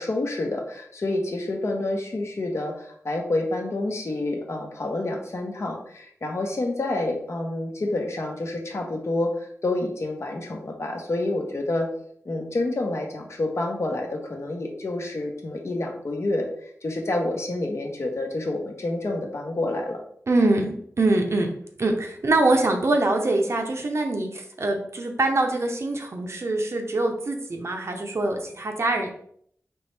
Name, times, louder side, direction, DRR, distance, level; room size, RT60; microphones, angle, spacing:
voice 1, 0.0-11.9 12.2-16.5 16.8-20.0, left 2 dB, 55° left, 2 dB, 0.9 m, -28 dB
voice 2, 20.3-21.5 21.8-29.1, right 2 dB, 55° right, 3 dB, 0.6 m, -24 dB
4.3 x 3.1 x 3.3 m, 0.65 s
wide cardioid pair, 90°, 6 cm